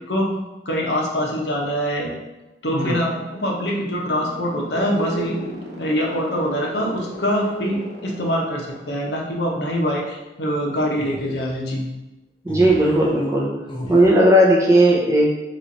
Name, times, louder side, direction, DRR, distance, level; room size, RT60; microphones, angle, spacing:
voice 1, 0.6-2.1 2.6-5.4 5.8-11.9, equal, 75° left, -2 dB, 0.8 m, -24 dB
sound 1, 3.2-9.5, equal, 80° right, 0.9 m, -40 dB
sound 2, 4.7-6.7 7.1-8.7 11.0-11.6 12.5-13.3 13.7-14.1, right 1 dB, 25° left, 0.6 m, -34 dB
voice 2, 12.4-13.5 13.9-15.3, right 1 dB, 15° right, -3 dB, 0.5 m, -16 dB
3.1 x 2.4 x 4.0 m, 1.1 s
head